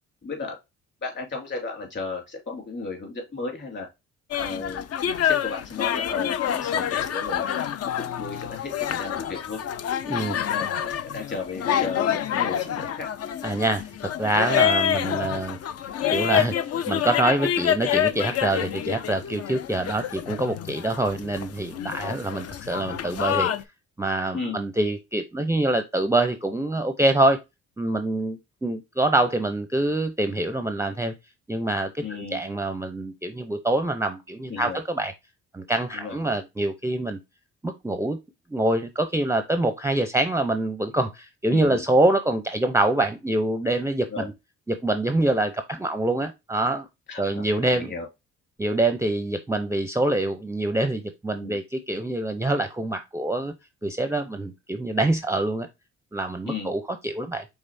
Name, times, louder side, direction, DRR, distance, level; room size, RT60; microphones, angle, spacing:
voice 1, 0.2-0.6 1.0-3.9 4.4-4.8 5.2-7.6 8.0-9.6 10.2-13.1 24.3-24.6 32.0-32.4 34.5-34.8 35.9-36.2 41.5-41.8 44.1-44.3 47.1-48.1 51.4-51.6 56.5-56.7, left 4 dB, 35° left, 1 dB, 2.9 m, -34 dB
sound 1, 4.3-23.6, left 9 dB, 55° left, 0.5 m, -27 dB
voice 2, 10.0-10.4 13.4-15.6 16.1-16.5 16.9-23.5 24.0-27.4 27.8-31.1 31.5-35.1 35.5-37.2 37.6-38.2 38.5-44.3 44.7-46.9 47.2-47.9 48.6-53.5 53.8-55.7 56.1-57.4, right 2 dB, 10° right, 8 dB, 0.5 m, -25 dB
5.4 x 3.6 x 2.6 m, 0.22 s
cardioid pair, 90°, 30 cm